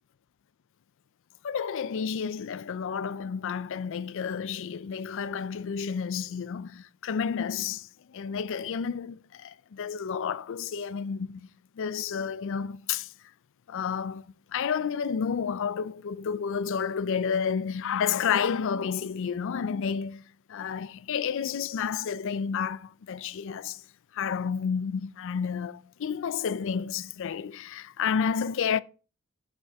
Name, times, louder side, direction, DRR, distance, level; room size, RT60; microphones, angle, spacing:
voice 1, 1.4-11.5 11.8-13.1 13.7-14.2 14.5-20.2 20.5-23.8 24.1-28.8, left 6 dB, 60° left, 0.4 m, -30 dB
8.4 x 6.8 x 3.5 m
head